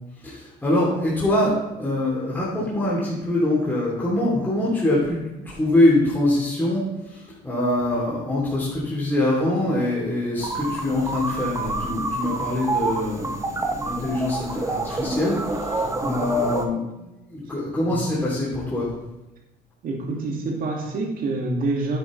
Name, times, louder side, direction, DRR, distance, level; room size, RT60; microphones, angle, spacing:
voice 1, 0.2-15.4 15.6-15.7 16.0-18.9, left 1 dB, 10° left, -7 dB, 3.1 m, -24 dB
sound 1, 10.4-16.7, right 2 dB, 20° right, 1.1 m, -28 dB
voice 2, 19.8-22.0, right 2 dB, 55° right, 1 dB, 2.2 m, -27 dB
9.9 x 8.9 x 3.3 m, 0.96 s
cardioid pair, 110°, 17 cm